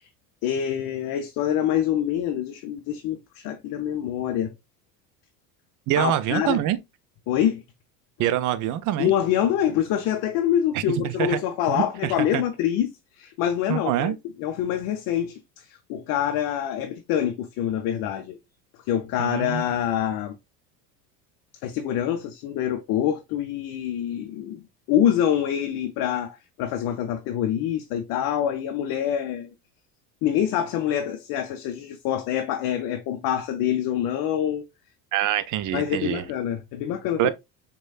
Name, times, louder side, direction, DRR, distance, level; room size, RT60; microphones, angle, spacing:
voice 1, 0.4-4.5 6.0-6.6 7.3-7.6 9.0-18.4 18.9-20.4 21.6-24.6 24.9-29.5 30.2-34.6 35.7-37.3, left 10 dB, 45° left, 0.5 m, -26 dB
voice 2, 5.9-6.8 8.2-9.1 10.7-11.4 11.7-12.4 13.7-14.1 19.2-19.6 35.1-36.2 37.2-37.3, right 12 dB, 40° right, 0.5 m, -25 dB
6.1 x 2.3 x 2.3 m
hypercardioid pair, 80°, 49 cm